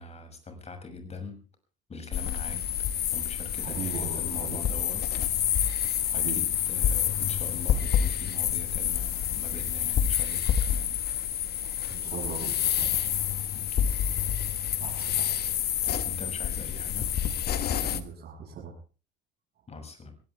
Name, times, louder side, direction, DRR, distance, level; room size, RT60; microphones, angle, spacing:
voice 1, 0.0-1.4 1.9-2.6 3.1-5.0 6.1-10.9 13.7-13.9 16.0-17.1 19.7-20.1, left 3 dB, 30° left, 6 dB, 6.9 m, -42 dB
sound 1, 2.1-18.0, left 9 dB, 50° left, 1.7 m, -28 dB
voice 2, 3.6-4.6 6.1-6.4 11.6-13.0 14.8-15.4 15.7-16.0 17.7-18.8 19.5-19.7, right 6 dB, 55° right, -3 dB, 6.5 m, -40 dB
21.5 x 18.0 x 3.5 m, 0.36 s
hypercardioid pair, 75°, 21 cm